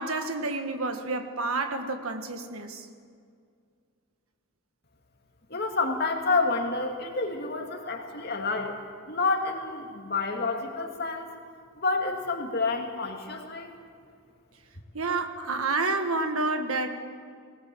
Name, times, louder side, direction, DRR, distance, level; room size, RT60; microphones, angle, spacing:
voice 1, 0.0-2.9 14.9-17.0, right 3 dB, 85° right, 7 dB, 1.7 m, -29 dB
voice 2, 5.5-8.8 9.1-11.3 11.8-13.7, left 3 dB, 45° left, 2 dB, 2.4 m, -29 dB
19.5 x 19.0 x 7.8 m, 2.2 s
head